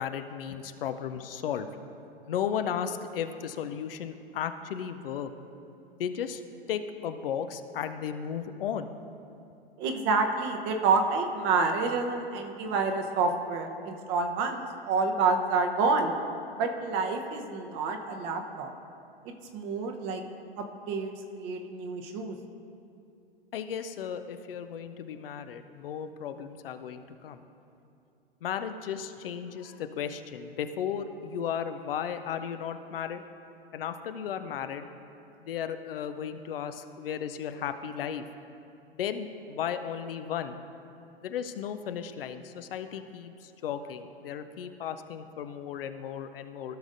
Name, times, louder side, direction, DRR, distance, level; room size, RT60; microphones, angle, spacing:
voice 1, 0.0-1.7 2.3-5.3 6.0-6.4 6.7-8.9 23.5-27.4 28.4-33.2 33.7-34.9 35.4-38.2 38.9-40.6 41.2-46.8, left 8 dB, 65° left, 9 dB, 0.6 m, -35 dB
voice 2, 9.8-16.1 16.5-18.7 19.2-20.2 20.6-22.4, right 4 dB, 40° right, 4 dB, 1.0 m, -28 dB
15.5 x 6.2 x 2.6 m, 2.6 s
hypercardioid pair, 105°, 30 cm